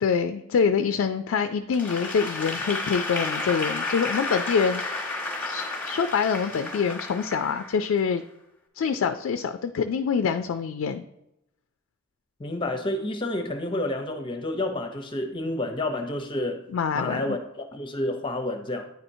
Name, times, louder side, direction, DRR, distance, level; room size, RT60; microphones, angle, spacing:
voice 1, 0.0-4.8 5.4-8.2 8.8-11.0 16.7-17.4, left 6 dB, 70° left, 8 dB, 0.3 m, -25 dB
Applause / Crowd, 1.7-8.1, left 3 dB, 5° left, 0.9 m, -31 dB
voice 2, 12.4-16.6 16.9-18.9, left 1 dB, 25° left, 5 dB, 0.6 m, -29 dB
9.4 x 4.3 x 2.6 m, 0.86 s
head